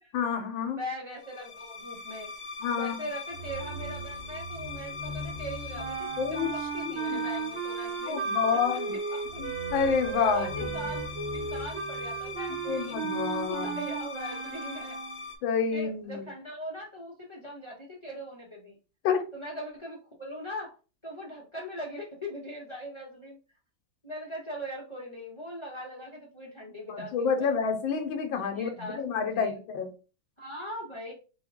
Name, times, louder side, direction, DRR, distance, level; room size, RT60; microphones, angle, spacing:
voice 1, 0.1-0.8 2.6-2.9 6.2-6.5 7.1-7.2 8.1-8.9 9.4-10.5 12.7-13.8 15.4-16.3 19.0-19.2 26.9-29.9, left 6 dB, 75° left, 1.4 m, -28 dB
voice 2, 0.8-2.3 2.7-8.2 8.7-8.8 9.1-9.4 10.2-11.1 11.3-13.0 13.5-15.0 15.7-18.8 19.3-20.7 21.0-23.4 24.0-27.5 28.5-29.0 29.3-29.6 30.4-31.1, equal, 25° left, 0.7 m, -40 dB
sound 1, 1.2-15.4, left 3 dB, 60° left, 1.2 m, -39 dB
sound 2, 5.7-15.3, right 6 dB, 70° right, 1.4 m, -35 dB
4.4 x 2.3 x 3.5 m
omnidirectional pair, 2.2 m